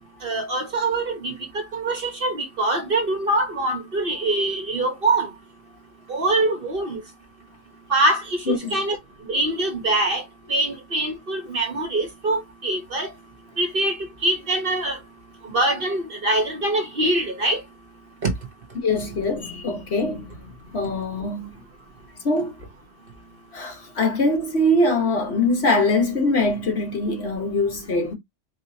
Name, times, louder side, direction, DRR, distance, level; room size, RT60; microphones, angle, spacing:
voice 1, 0.2-5.3 6.1-7.0 7.9-9.0 9.3-13.1 13.6-14.0 14.2-15.0 15.4-17.6 18.2-18.3, right 2 dB, 45° right, 1.3 m, -24 dB
voice 2, 8.5-8.8 18.8-21.6 22.2-22.5 23.5-28.1, left 2 dB, 55° left, 1.6 m, -23 dB
4.5 x 3.0 x 2.8 m
omnidirectional pair, 1.3 m